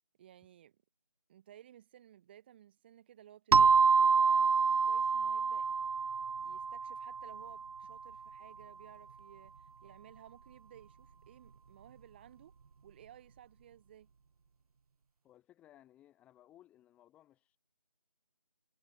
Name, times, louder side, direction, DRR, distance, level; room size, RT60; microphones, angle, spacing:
voice 1, 0.2-0.8 1.3-5.7 6.4-12.5 12.8-14.1, right 11 dB, 15° right, 1.9 m, -57 dB
sound 1, 3.5-7.9, right 5 dB, 70° right, 0.5 m, -27 dB
voice 2, 15.2-17.6, left 12 dB, 5° left, 4.6 m, -62 dB
figure-of-eight pair, 165°, 19 cm